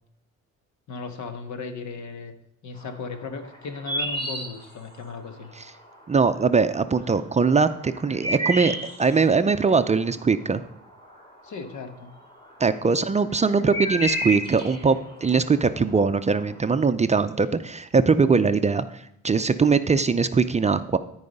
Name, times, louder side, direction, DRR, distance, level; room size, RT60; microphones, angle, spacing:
voice 1, 0.9-2.3 2.6-5.5 11.4-12.1, left 4 dB, 70° left, 7 dB, 1.4 m, -36 dB
sound 1, 2.8-5.4 5.8-6.5 6.8-12.0 12.2-16.6, equal, 15° left, 2.5 m, -31 dB
voice 2, 6.1-10.6 12.6-21.0, right 4 dB, 25° right, 10 dB, 0.5 m, -21 dB
13.0 x 4.8 x 5.4 m, 0.75 s
cardioid pair, 90°, 30 cm